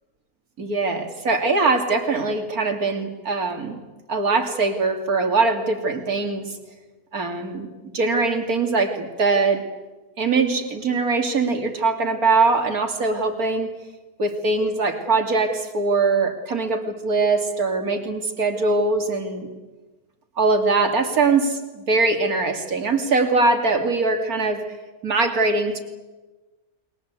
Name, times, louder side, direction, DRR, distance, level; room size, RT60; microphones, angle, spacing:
voice 1, 0.6-3.8 4.1-6.5 7.1-7.7 7.9-9.7 10.2-13.7 14.2-19.5 20.4-24.7 25.0-25.8, right 3 dB, 70° right, 6 dB, 3.1 m, -22 dB
30.0 x 22.5 x 8.3 m, 1.2 s
omnidirectional pair, 1.6 m